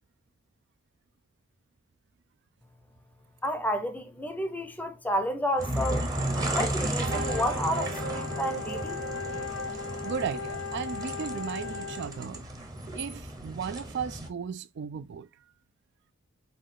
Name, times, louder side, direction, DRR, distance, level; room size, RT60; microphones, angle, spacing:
voice 1, 3.4-6.1 6.5-9.0, equal, 10° left, 0.6 m, -31 dB
sound 1, 5.6-14.3, right 1 dB, 20° right, 0.8 m, -34 dB
Wind instrument woodwind instrument, 7.0-12.2, left 6 dB, 70° left, 0.5 m, -38 dB
sound 2, 7.0-11.9, right 5 dB, 75° right, 0.9 m, -40 dB
voice 2, 10.0-12.4 12.9-15.3, right 6 dB, 55° right, 0.4 m, -35 dB
5.4 x 2.3 x 3.6 m
head